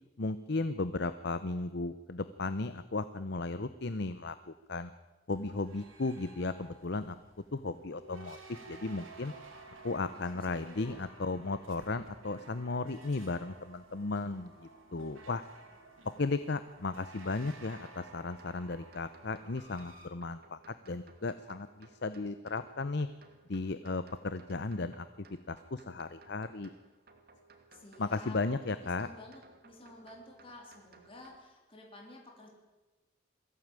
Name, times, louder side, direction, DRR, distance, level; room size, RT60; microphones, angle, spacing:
voice 1, 0.2-4.9 5.3-7.1 7.5-9.3 9.8-15.4 16.2-23.1 23.5-25.1 25.5-26.7 28.0-29.1, left 3 dB, 55° left, 12 dB, 0.7 m, -35 dB
sound 1, 5.3-20.1, right 3 dB, 80° right, 4.6 m, -54 dB
voice 2, 10.1-11.1 27.7-32.5, left 2 dB, 25° left, 0 dB, 3.4 m, -52 dB
sound 2, 17.6-31.4, right 3 dB, 50° right, 2.5 m, -61 dB
21.5 x 15.0 x 9.0 m, 1.2 s
head